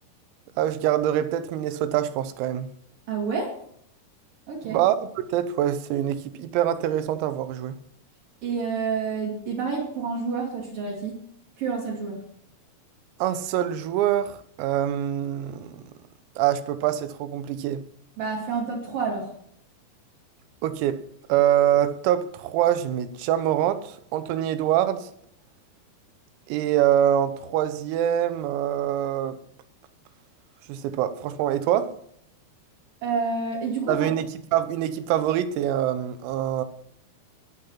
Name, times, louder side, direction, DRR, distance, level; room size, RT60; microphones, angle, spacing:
voice 1, 0.6-2.7 4.6-7.8 13.2-15.9 16.4-17.8 20.6-21.0 21.3-25.1 26.5-29.4 30.7-31.9 33.9-36.7, right 11 dB, 85° right, 3.6 m, -24 dB
voice 2, 3.1-3.5 4.5-4.8 8.4-11.2 11.6-12.2 18.2-19.3 33.0-34.1, right 5 dB, 50° right, 3.4 m, -28 dB
19.5 x 6.9 x 5.7 m
omnidirectional pair, 6.0 m